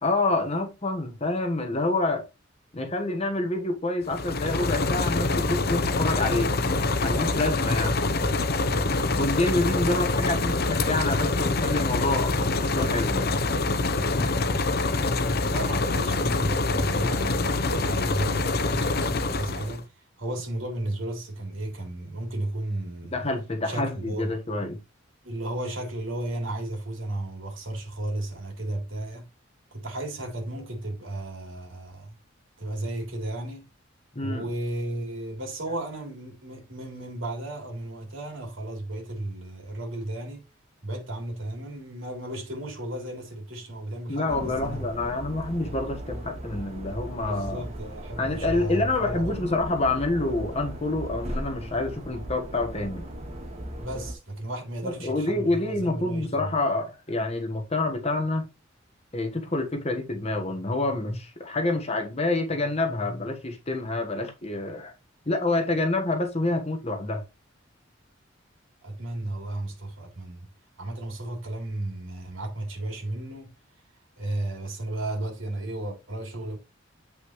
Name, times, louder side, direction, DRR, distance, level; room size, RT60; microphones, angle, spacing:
voice 1, 0.0-2.2 2.7-6.6 7.0-8.0 9.1-12.3 12.6-13.3 23.1-24.8 34.1-34.5 44.1-47.6 48.2-53.0 54.8-58.4 59.1-64.9 65.3-67.2, left 2 dB, 35° left, 1.3 m, -27 dB
sound 1, 4.0-19.8, left 3 dB, 55° left, 0.8 m, -25 dB
voice 2, 15.5-19.9 20.2-23.3 23.6-24.3 25.2-29.3 29.7-32.1 32.6-33.6 34.2-40.4 40.8-44.9 47.3-49.5 53.8-56.5 68.8-70.5 70.8-73.5 74.2-76.6, right 1 dB, 80° right, 3.5 m, -34 dB
sound 2, 44.3-54.1, right 1 dB, 35° right, 1.6 m, -37 dB
8.1 x 5.4 x 3.1 m
head